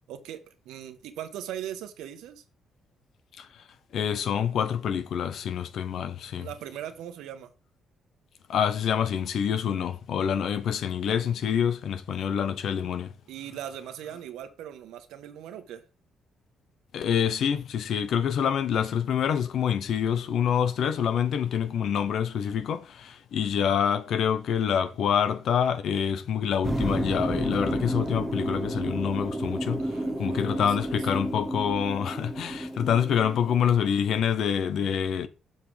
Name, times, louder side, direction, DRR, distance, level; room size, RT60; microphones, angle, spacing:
voice 1, 0.1-2.4 6.4-7.5 13.3-15.8 29.8-31.1, right 10 dB, 90° right, 1.3 m, -40 dB
voice 2, 3.9-6.5 8.5-13.1 16.9-35.3, left 8 dB, 70° left, 0.9 m, -26 dB
sound 1, 26.6-33.6, right 1 dB, 5° right, 1.8 m, -31 dB
7.5 x 6.6 x 3.5 m
cardioid pair, 90°, 0 cm